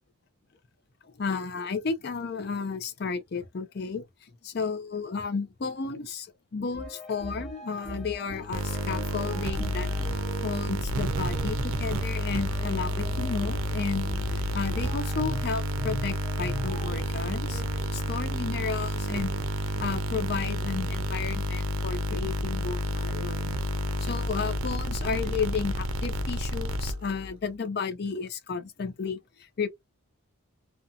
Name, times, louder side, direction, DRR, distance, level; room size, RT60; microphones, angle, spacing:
voice 1, 1.2-4.1 4.4-6.3 6.5-9.9 10.4-17.6 17.9-19.3 19.8-23.4 24.0-29.2 29.6-29.7, left 5 dB, 50° left, 0.4 m, -33 dB
sound 1, 6.7-17.9, equal, 5° left, 0.6 m, -40 dB
sound 2, 8.5-27.3, equal, 80° right, 0.5 m, -30 dB
2.5 x 2.2 x 2.6 m
head